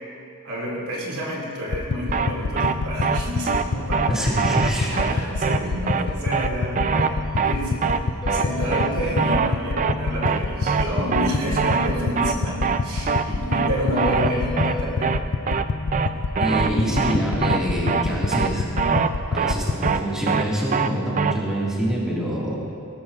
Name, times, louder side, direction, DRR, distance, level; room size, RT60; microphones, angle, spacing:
voice 1, 0.4-4.3 4.9-7.7 8.3-15.1, equal, 90° right, -4 dB, 2.7 m, -29 dB
sound 1, 1.7-20.0, left 3 dB, 55° left, 0.5 m, -28 dB
sound 2, 2.1-2.3 2.6-2.7 3.0-3.2 3.5-3.6 3.9-4.1 4.4-4.7 5.0-5.1 5.4-5.6 5.9-6.0 6.3-6.5 6.8-7.1 7.4-7.5 7.8-8.0 8.3-8.4 8.7-8.9 9.2-9.5 9.8-9.9 10.2-10.4 10.7-10.8 11.1-11.3 11.6-11.9 12.2-12.3 12.6-12.8 13.1-13.2 13.5-13.7 14.0-14.3 14.6-14.7 15.0-15.2 15.5-15.6 15.9-16.1 16.4-16.7 17.0-17.1 17.4-17.6 17.9-18.0 18.3-18.5 18.8-19.1 19.4-19.5 19.8-20.0 20.3-20.4 20.7-20.9 21.2-21.3, right 5 dB, 35° right, 0.4 m, -22 dB
voice 2, 4.1-5.0 16.4-18.7 19.3-22.6, right 1 dB, 5° right, -7 dB, 2.3 m, -25 dB
sound 3, 7.0-7.1 7.4-7.5 7.7-7.8 8.2-9.2 13.9-14.9, left 3 dB, 20° left, 0.9 m, -34 dB
18.0 x 13.0 x 2.6 m, 2.6 s
head